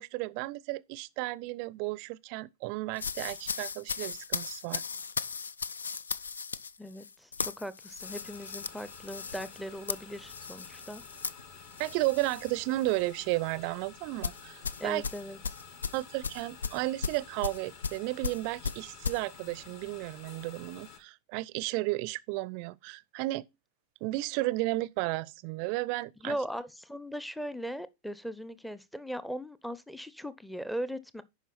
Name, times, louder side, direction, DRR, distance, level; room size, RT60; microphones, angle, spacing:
voice 1, 0.0-4.8 11.8-15.0 15.9-23.5 24.0-26.4, right 20 dB, 45° right, 0.5 m, -33 dB
sound 1, 3.0-12.6 12.9-13.2 14.2-19.2, left 5 dB, 70° left, 0.4 m, -37 dB
voice 2, 6.8-11.0 14.8-15.4 26.2-31.2, equal, ahead, 0.6 m, -39 dB
sound 2, 8.0-21.0, left 5 dB, 50° left, 1.8 m, -51 dB
11.0 x 4.8 x 4.2 m
figure-of-eight pair, 90°, 0 cm